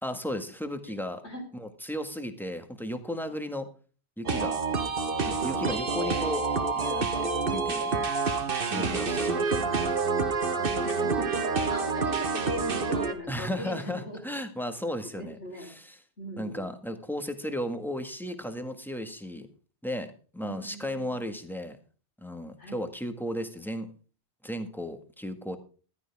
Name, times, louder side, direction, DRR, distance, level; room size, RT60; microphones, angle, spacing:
voice 1, 0.0-1.3 1.5-3.7 4.2-4.6 5.2-6.4 6.8-8.1 8.7-9.7 13.3-16.0 16.4-19.5 19.8-21.8 22.2-23.9 24.4-25.6, equal, ahead, 7 dB, 1.7 m, -35 dB
sound 1, 4.2-13.1, right 4 dB, 55° right, 1.4 m, -28 dB
voice 2, 5.5-6.1 8.7-9.8 10.6-14.2 15.2-15.7 16.2-16.7 20.4-21.2 22.6-22.8, equal, 85° left, 1 dB, 4.9 m, -39 dB
15.0 x 12.5 x 3.6 m, 0.38 s
omnidirectional pair, 1.1 m